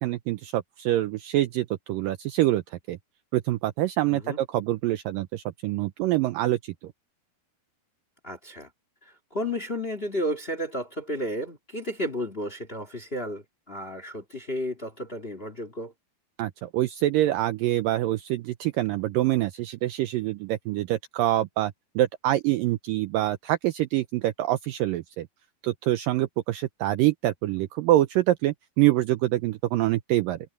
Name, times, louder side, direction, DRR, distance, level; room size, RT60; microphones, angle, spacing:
voice 1, 0.0-3.0 3.3-6.9 16.4-25.3 25.6-30.4, right 15 dB, 85° right, 2.0 m, -25 dB
voice 2, 8.2-8.7 9.3-15.9, equal, 40° left, 0.8 m, -32 dB
omnidirectional pair, 4.7 m